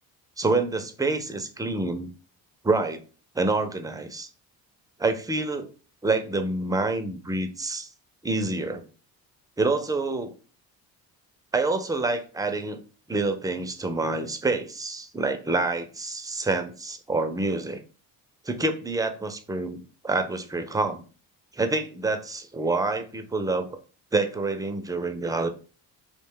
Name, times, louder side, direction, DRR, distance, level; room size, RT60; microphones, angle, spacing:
voice 1, 0.4-2.1 2.6-3.0 3.4-4.3 5.0-5.7 6.0-7.9 8.2-8.8 9.6-10.3 11.5-12.8 13.1-17.8 18.5-21.0 21.6-23.8 24.1-25.5, right 3 dB, 10° right, 8 dB, 0.3 m, -27 dB
2.4 x 2.2 x 3.6 m, 0.37 s
supercardioid pair, 60°, 46 cm